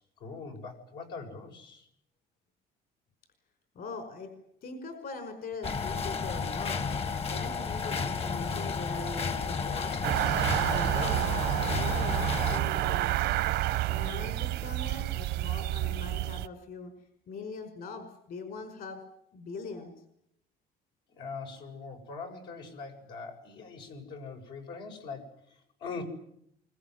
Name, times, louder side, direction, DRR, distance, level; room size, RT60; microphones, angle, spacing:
voice 1, 0.0-1.9 21.1-26.0, left 4 dB, 85° left, 1 dB, 7.0 m, -42 dB
voice 2, 3.8-4.3 4.6-6.9 7.3-10.0 10.6-11.4 11.7-13.1 13.8-16.9 17.3-19.0 19.3-19.9, left 3 dB, 60° left, 7 dB, 5.2 m, -41 dB
sound 1, 5.6-12.6, left 5 dB, 35° left, 1.2 m, -32 dB
sound 2, 10.0-16.5, right 15 dB, 85° right, 1.0 m, -29 dB
24.5 x 22.5 x 9.6 m, 0.74 s
cardioid pair, 110°, 17 cm